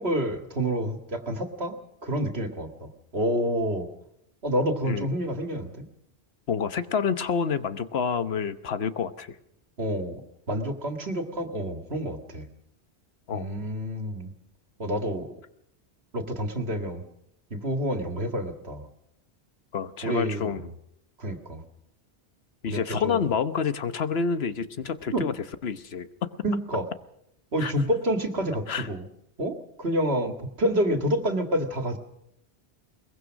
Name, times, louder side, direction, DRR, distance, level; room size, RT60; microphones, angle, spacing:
voice 1, 0.0-1.8 2.0-3.9 4.4-5.9 9.8-10.2 10.5-12.5 13.3-14.3 14.8-15.3 16.1-17.0 17.5-18.9 20.0-20.5 21.2-21.6 22.7-23.3 25.1-25.3 26.4-26.9 27.5-29.0 29.4-32.0, equal, 70° right, 6 dB, 2.2 m, -28 dB
voice 2, 6.5-9.3 13.3-13.5 19.7-20.7 22.6-25.3 25.6-26.3 27.6-27.7 28.7-28.9, left 6 dB, 70° left, 12 dB, 1.2 m, -28 dB
22.0 x 21.5 x 6.4 m, 0.78 s
omnidirectional pair, 1.1 m